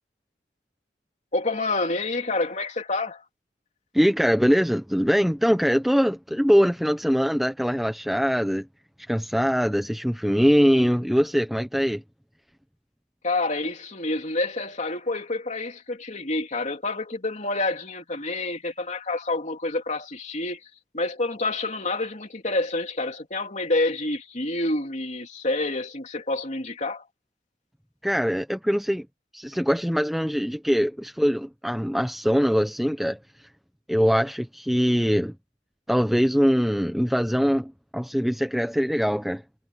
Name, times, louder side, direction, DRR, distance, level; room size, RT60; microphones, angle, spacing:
voice 1, 1.3-3.2 13.2-20.6 20.9-27.0, left 2 dB, 40° left, 3.1 m, -28 dB
voice 2, 3.9-8.7 9.1-12.0 28.0-29.1 29.3-33.2 33.9-35.3 35.9-39.4, equal, ahead, 1.0 m, -22 dB
head